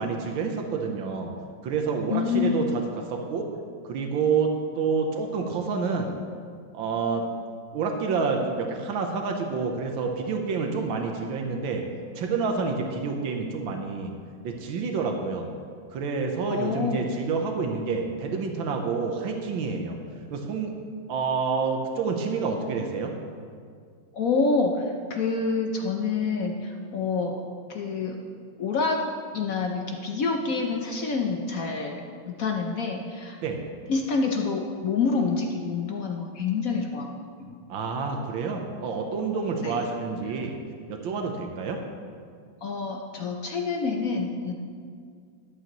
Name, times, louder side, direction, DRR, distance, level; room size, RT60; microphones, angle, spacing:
voice 1, 0.0-1.3 1.6-3.5 3.8-6.1 6.7-7.3 7.7-11.8 12.1-14.1 14.4-15.5 15.9-20.0 20.3-20.7 21.1-23.1 33.4-33.6 37.7-40.6 40.9-41.8, right 5 dB, 85° right, 3 dB, 1.7 m, -28 dB
voice 2, 2.1-2.6 16.5-17.1 24.1-27.4 27.7-28.2 28.6-29.0 29.3-33.4 33.9-37.6 39.6-39.8 42.6-44.5, left 4 dB, 60° left, 2 dB, 0.9 m, -27 dB
13.5 x 11.0 x 3.1 m, 2.1 s
omnidirectional pair, 2.1 m